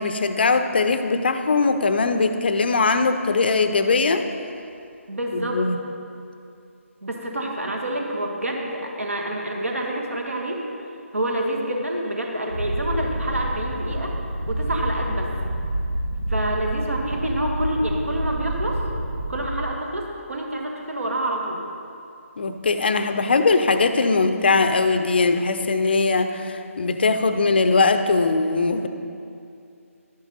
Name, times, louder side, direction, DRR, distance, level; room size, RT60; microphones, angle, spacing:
voice 1, 0.0-4.2 5.3-5.8 22.4-28.9, left 4 dB, 45° left, 9 dB, 0.6 m, -20 dB
voice 2, 5.1-5.6 7.0-10.6 11.1-14.1 14.5-15.3 16.3-18.8 19.3-21.6, right 1 dB, 65° right, 1 dB, 1.7 m, -27 dB
Purr, 12.5-19.5, right 1 dB, 90° right, 1.3 m, -28 dB
11.5 x 9.2 x 4.1 m, 2.5 s
figure-of-eight pair, 150°, 8 cm